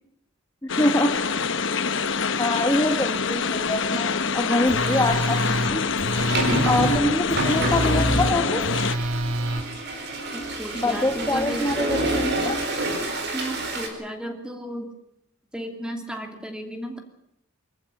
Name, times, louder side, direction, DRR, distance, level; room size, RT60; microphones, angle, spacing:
voice 1, 0.6-1.1 2.4-5.8 6.5-8.6 10.7-12.6, left 1 dB, 15° left, 3 dB, 1.3 m, -25 dB
sound 1, 0.7-9.0, left 5 dB, 60° left, 1.1 m, -25 dB
sound 2, 3.1-3.2 3.7-3.9 5.0-13.9, right 1 dB, 50° right, 4.5 m, -28 dB
Telephone, 4.7-9.6, right 1 dB, 75° right, 1.4 m, -27 dB
voice 2, 10.3-12.0 13.3-15.0 15.5-17.0, equal, 5° right, 4 dB, 2.8 m, -34 dB
25.0 x 14.5 x 9.2 m, 0.77 s
head